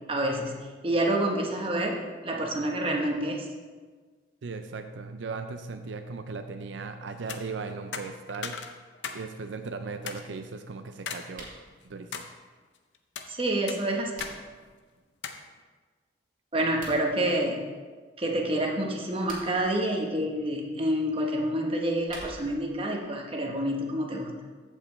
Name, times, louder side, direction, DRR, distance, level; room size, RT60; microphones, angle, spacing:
voice 1, 0.1-0.5 0.8-3.5 13.3-14.1 16.5-17.6 18.2-24.3, right 1 dB, 30° right, 0 dB, 1.1 m, -28 dB
voice 2, 4.4-8.6 9.1-11.5 11.8-12.3, right 4 dB, 80° right, 8 dB, 0.5 m, -37 dB
sound 1, 7.2-7.4 7.9-9.2 9.6-9.7 10.1-10.2 11.1-11.3 11.7-12.3 12.9-13.3 13.7-14.4 14.6-14.7 15.2-15.4, left 6 dB, 75° left, 0.7 m, -37 dB
sound 2, 11.3-11.6 13.7-14.6 16.6-17.0 19.0-19.7 21.7-22.7, right 2 dB, 45° right, 1.9 m, -46 dB
15.0 x 5.4 x 3.2 m, 1.4 s
head